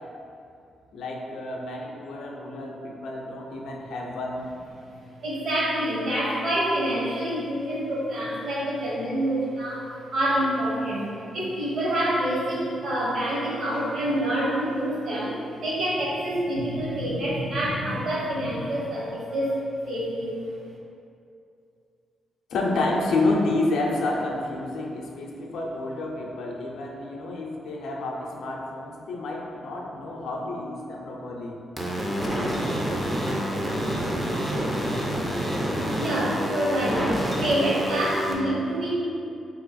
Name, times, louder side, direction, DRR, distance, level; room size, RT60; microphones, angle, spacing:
voice 1, 0.9-4.5 22.5-31.6, left 2 dB, 70° left, -1 dB, 0.5 m, -29 dB
voice 2, 5.2-20.4 36.0-37.1 37.4-38.9, right 1 dB, 50° right, -6 dB, 1.0 m, -27 dB
sound 1, 31.8-38.3, equal, 5° right, 0.4 m, -27 dB
3.0 x 2.9 x 4.0 m, 2.6 s
wide cardioid pair, 175°, 0 cm